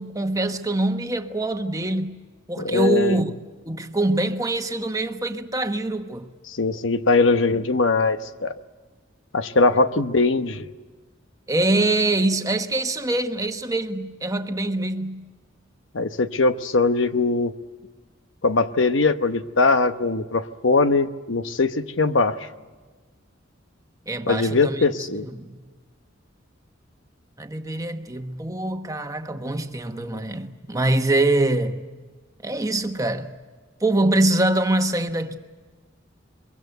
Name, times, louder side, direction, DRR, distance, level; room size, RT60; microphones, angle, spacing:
voice 1, 0.0-2.2 2.5-3.3 3.7-6.3 9.7-9.8 11.5-15.3 24.1-25.6 27.4-31.9 32.4-33.3 33.8-35.4, right 2 dB, 20° right, 1.2 m, -24 dB
voice 2, 2.6-3.2 6.5-8.6 9.3-10.7 15.9-17.5 18.4-22.5 24.3-25.3, left 3 dB, 80° left, 1.0 m, -21 dB
23.5 x 23.0 x 8.0 m
head